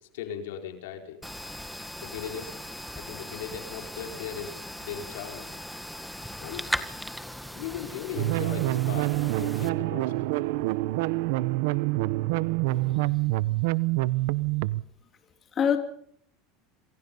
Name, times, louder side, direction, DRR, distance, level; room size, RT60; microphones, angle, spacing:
voice 1, 0.1-1.2 2.0-2.5 2.9-4.5 4.8-5.5 6.4-6.7 7.5-10.1, left 9 dB, 85° left, 4.8 m, -38 dB
sound 1, 1.2-9.7, equal, ahead, 1.8 m, -38 dB
sound 2, 8.2-14.8, right 20 dB, 75° right, 0.9 m, -26 dB
voice 2, 12.7-13.1 15.5-15.8, left 7 dB, 30° left, 3.0 m, -27 dB
27.5 x 22.5 x 5.5 m
supercardioid pair, 125°, 0 cm